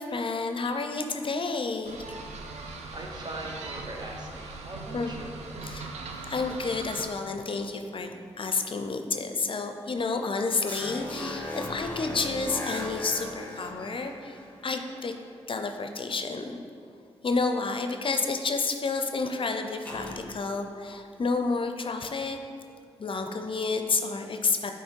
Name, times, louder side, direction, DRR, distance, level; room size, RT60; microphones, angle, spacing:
voice 1, 0.0-2.1 4.9-5.2 5.6-5.9 6.3-15.1 15.5-16.6 17.2-22.4 23.0-24.7, left 4 dB, 50° left, 6 dB, 0.5 m, -30 dB
sound 1, 1.8-7.1, right 3 dB, 80° right, 0.5 m, -40 dB
voice 2, 2.7-5.8 6.1-6.2, right 1 dB, 40° right, 0 dB, 1.1 m, -41 dB
sound 2, 10.7-15.1 19.8-20.2, left 1 dB, 15° left, 1.3 m, -37 dB
7.4 x 3.0 x 4.5 m, 2.3 s
supercardioid pair, 45°, 11 cm